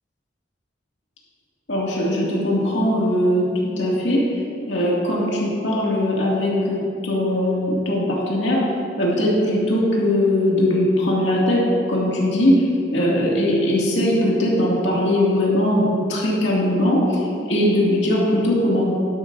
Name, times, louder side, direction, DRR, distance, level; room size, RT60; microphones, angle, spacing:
voice 1, 1.7-4.2 4.7-8.6 9.0-11.6 11.9-12.6 12.9-18.9, left 1 dB, 90° left, -4 dB, 2.2 m, -20 dB
11.5 x 10.0 x 2.6 m, 2.8 s
head